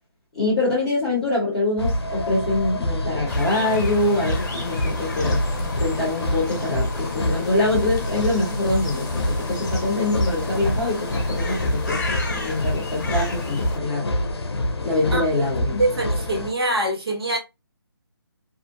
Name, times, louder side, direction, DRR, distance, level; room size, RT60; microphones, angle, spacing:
voice 1, 0.3-5.4 5.8-14.1 14.8-15.8, left 2 dB, ahead, 0.6 m, -24 dB
sound 1, 1.8-16.5, left 1 dB, 85° left, 0.5 m, -26 dB
sound 2, 3.3-13.8, left 3 dB, 45° left, 0.7 m, -35 dB
voice 2, 15.8-17.4, right 1 dB, 75° right, 1.1 m, -23 dB
2.5 x 2.4 x 2.5 m
hypercardioid pair, 180°, 13 cm